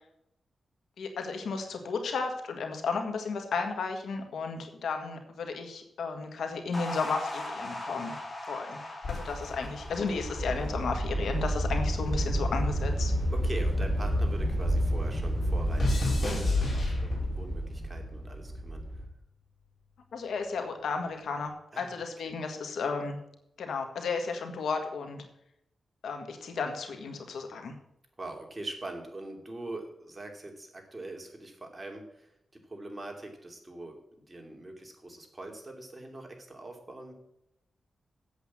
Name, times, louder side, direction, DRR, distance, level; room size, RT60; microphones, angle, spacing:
voice 1, 1.0-8.1 8.5-8.8 9.1-13.1 20.1-23.2 23.6-25.2 26.0-27.7, left 4 dB, 85° left, 5 dB, 1.7 m, -33 dB
sound 1, 6.7-13.2, left 1 dB, 35° left, 2.9 m, -41 dB
sound 2, 9.0-11.5 11.8-14.5 14.7-17.5 18.3-18.7, left 4 dB, 50° left, 4.4 m, -35 dB
sound 3, 9.1-19.1, equal, ahead, 4.0 m, -30 dB
voice 2, 13.3-18.8 21.7-22.1 28.2-32.3 32.7-37.1, right 2 dB, 25° right, 2 dB, 2.7 m, -42 dB
8.3 x 8.0 x 8.5 m, 0.81 s
cardioid pair, 85°, 0 cm